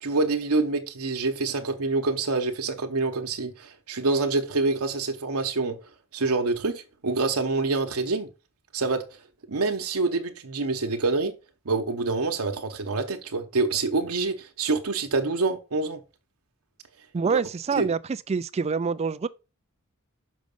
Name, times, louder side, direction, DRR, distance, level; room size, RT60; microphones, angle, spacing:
voice 1, 0.0-5.8 6.1-8.3 8.7-9.0 9.5-11.3 11.6-16.0 17.3-17.4 17.8-17.9, right 3 dB, 80° right, 0.9 m, -26 dB
voice 2, 17.1-19.3, right 5 dB, 30° right, 0.3 m, -26 dB
6.3 x 5.2 x 5.3 m
head